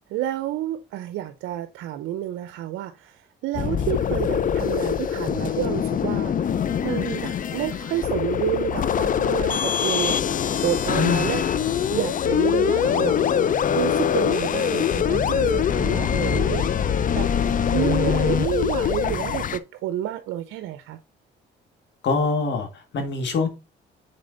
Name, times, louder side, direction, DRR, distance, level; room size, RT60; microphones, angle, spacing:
voice 1, 0.1-10.2 10.6-11.5 11.9-13.4 13.7-16.7 17.1-21.0, right 13 dB, 90° right, 0.5 m, -29 dB
sound 1, 3.5-19.6, left 8 dB, 40° left, 0.5 m, -23 dB
voice 2, 10.9-11.4 17.9-18.0 22.0-23.5, left 4 dB, 65° left, 1.8 m, -24 dB
6.6 x 4.2 x 3.9 m
cardioid pair, 90°, 20 cm